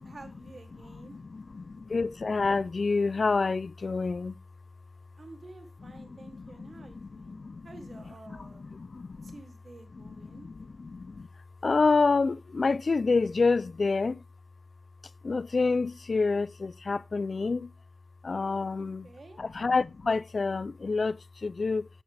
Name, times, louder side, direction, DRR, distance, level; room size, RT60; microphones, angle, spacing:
voice 1, 0.0-1.2 5.2-8.6 9.2-10.5 18.8-19.4, right 2 dB, 65° right, 2.9 m, -50 dB
voice 2, 1.3-4.4 6.6-6.8 7.3-7.7 8.8-9.3 10.4-10.5 10.8-11.3 11.6-14.2 15.2-17.7 18.2-19.1 19.4-21.9, left 4 dB, 65° left, 0.5 m, -27 dB
12.5 x 9.7 x 3.4 m
cardioid pair, 45°, 0 cm